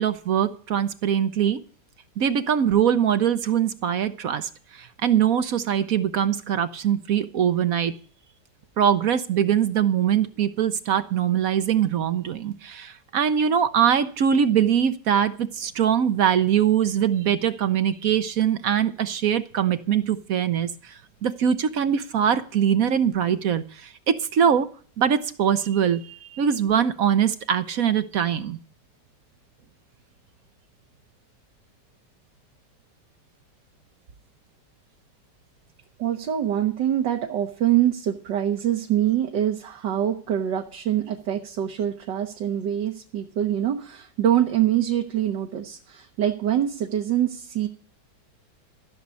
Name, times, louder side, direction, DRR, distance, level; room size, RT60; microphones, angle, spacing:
voice 1, 0.0-1.6 2.2-7.9 8.8-20.9 21.2-24.7 25.0-28.6, right 8 dB, 60° right, 12 dB, 1.1 m, -22 dB
voice 2, 36.0-47.7, right 11 dB, 80° right, 3 dB, 1.9 m, -24 dB
14.5 x 6.5 x 8.3 m, 0.42 s
omnidirectional pair, 1.9 m